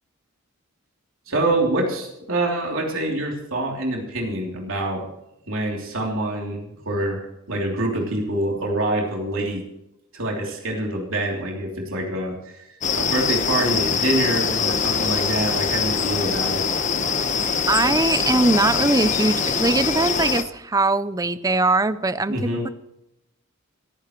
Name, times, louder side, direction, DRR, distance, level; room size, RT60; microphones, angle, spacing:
voice 1, 1.3-5.1 5.5-9.6 10.1-12.7 12.9-16.6 22.3-22.7, right 1 dB, 70° right, 0 dB, 3.1 m, -25 dB
sound 1, 12.8-20.4, left 6 dB, 35° left, 1.1 m, -23 dB
voice 2, 17.7-22.7, right 2 dB, 15° right, 14 dB, 0.5 m, -21 dB
28.5 x 10.0 x 3.1 m, 0.85 s
head